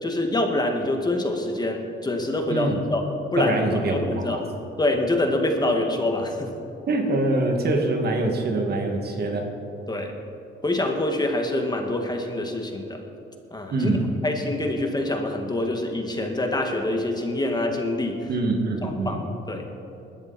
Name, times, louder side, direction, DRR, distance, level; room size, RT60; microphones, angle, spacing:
voice 1, 0.0-3.0 3.3-3.6 3.9-4.4 4.8-6.5 9.9-10.1 10.6-13.0 13.5-13.9 14.2-18.3 18.8-19.2 19.5-19.7, left 2 dB, 20° left, 3 dB, 1.9 m, -25 dB
voice 2, 2.5-2.8 3.4-4.4 5.6-5.7 6.9-9.5 13.7-14.1 18.3-19.2, right 2 dB, 55° right, 2 dB, 2.4 m, -24 dB
19.0 x 13.0 x 4.4 m, 2.7 s
cardioid pair, 90°, 20 cm